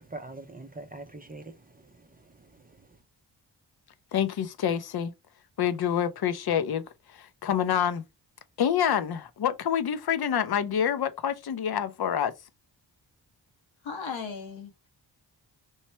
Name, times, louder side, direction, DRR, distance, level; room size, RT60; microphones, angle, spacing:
voice 1, 0.0-2.9, right 2 dB, 20° right, 0.5 m, -44 dB
voice 2, 4.1-5.1 5.6-6.8 7.1-8.0 8.6-12.3, left 9 dB, 55° left, 0.6 m, -27 dB
voice 3, 13.8-14.9, left 5 dB, 90° left, 1.2 m, -37 dB
3.1 x 2.1 x 4.1 m
cardioid pair, 70°, 45 cm